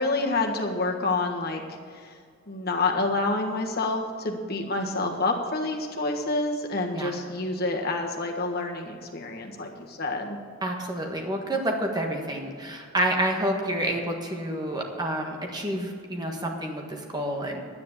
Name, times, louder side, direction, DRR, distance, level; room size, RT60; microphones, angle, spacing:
voice 1, 0.0-2.1 2.5-10.4, left 2 dB, 45° left, 2 dB, 1.6 m, -28 dB
voice 2, 10.6-17.6, right 1 dB, 20° right, 1 dB, 1.5 m, -29 dB
10.5 x 9.7 x 7.2 m, 2.2 s
head